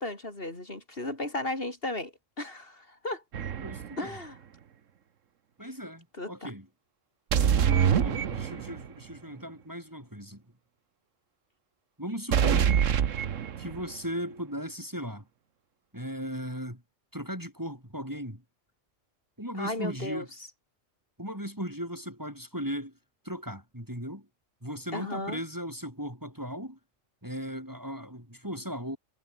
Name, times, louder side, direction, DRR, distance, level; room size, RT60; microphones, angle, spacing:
voice 1, 0.0-2.1 2.4-3.2 4.0-4.4 6.2-6.5 19.6-20.3 24.9-25.4, left 2 dB, 50° left, 5.2 m, -35 dB
sound 1, 3.3-4.0 7.3-8.9 12.3-13.9, right 8 dB, 90° right, 1.5 m, -25 dB
voice 2, 3.6-4.2 5.6-6.7 7.7-10.4 12.0-12.7 13.6-15.3 15.9-16.8 17.1-18.4 19.4-20.3 21.2-22.9 23.2-24.3 24.6-26.8 27.2-29.0, equal, 15° right, 7.3 m, -37 dB
omnidirectional pair, 1.3 m